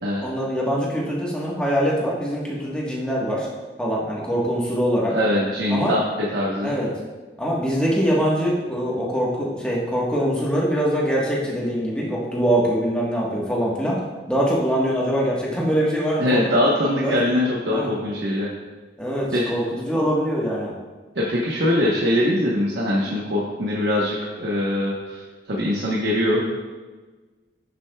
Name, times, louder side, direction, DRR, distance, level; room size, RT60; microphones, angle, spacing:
voice 1, 0.2-3.5 3.8-5.1 5.7-6.0 6.6-6.9 7.4-14.0 14.3-16.5 17.0-17.1 17.7-17.9 19.0-20.7, equal, 5° left, -5 dB, 1.3 m, -23 dB
voice 2, 5.1-6.0 6.3-6.7 16.2-18.5 19.3-19.5 21.1-25.2 25.5-26.4, left 1 dB, 75° right, -5 dB, 1.0 m, -22 dB
10.0 x 6.6 x 2.3 m, 1.3 s
head